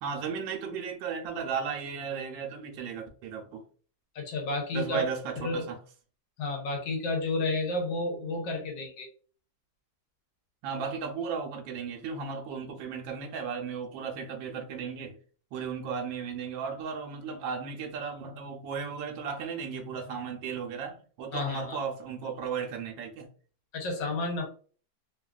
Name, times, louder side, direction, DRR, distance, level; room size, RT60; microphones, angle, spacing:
voice 1, 0.0-3.6 4.7-5.8 10.6-15.2 15.5-23.3, right 6 dB, 85° right, 2 dB, 1.4 m, -35 dB
voice 2, 4.1-5.0 5.4-5.7 6.4-9.1 21.3-21.8 23.7-24.5, left 2 dB, 75° left, 1 dB, 1.4 m, -31 dB
3.4 x 2.3 x 2.4 m, 0.42 s
omnidirectional pair, 2.0 m